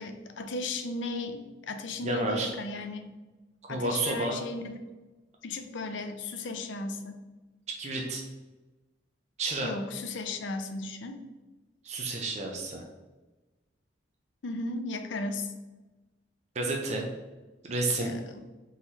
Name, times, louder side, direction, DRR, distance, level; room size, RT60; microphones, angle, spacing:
voice 1, 0.0-3.1 3.7-4.8 5.4-7.1 9.6-11.2 14.4-15.5 18.0-18.4, left 2 dB, 70° left, 7 dB, 0.5 m, -35 dB
voice 2, 2.0-2.5 3.7-4.4 7.8-8.2 9.4-9.7 11.8-12.8 16.6-17.1 17.7-18.1, right 2 dB, 35° right, 1 dB, 0.5 m, -30 dB
3.9 x 3.0 x 4.1 m, 1.1 s
head